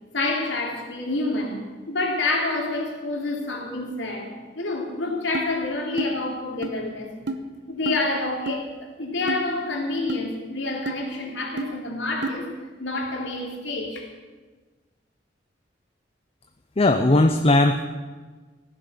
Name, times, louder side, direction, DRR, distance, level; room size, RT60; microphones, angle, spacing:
voice 1, 0.1-7.1 7.7-12.5 12.8-14.1, left 2 dB, 85° left, 0 dB, 3.1 m, -28 dB
sound 1, 5.3-5.5 6.0-6.1 6.6-6.7 7.3-7.4 7.9-8.0 8.5-8.6 9.3-9.4 10.1-10.2 10.9-11.0 11.6-11.7 12.2-12.4, right 3 dB, 70° right, 1.0 m, -28 dB
voice 2, 16.8-17.8, left 2 dB, 30° left, 7 dB, 0.6 m, -18 dB
15.5 x 10.5 x 6.8 m, 1.4 s
head